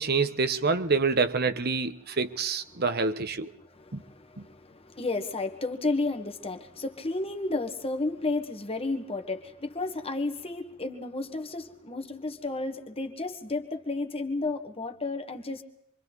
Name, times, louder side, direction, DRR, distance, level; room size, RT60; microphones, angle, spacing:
voice 1, 0.0-3.5, right 4 dB, 50° right, 1.1 m, -26 dB
voice 2, 3.6-15.6, left 2 dB, 30° left, 1.7 m, -32 dB
27.5 x 24.0 x 4.0 m
head